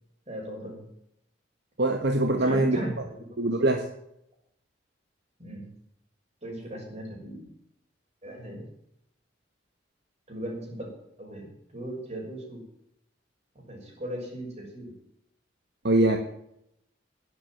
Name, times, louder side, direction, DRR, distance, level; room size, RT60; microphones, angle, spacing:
voice 1, 0.3-0.8 2.4-3.2 5.4-5.7 6.4-7.5 8.2-8.6 10.3-10.9 11.2-12.6 13.7-14.9, right 1 dB, 40° right, -1 dB, 6.5 m, -37 dB
voice 2, 1.8-2.8 3.4-3.9 15.8-16.2, right 2 dB, 65° right, 5 dB, 1.4 m, -23 dB
11.0 x 10.0 x 9.2 m, 0.77 s
head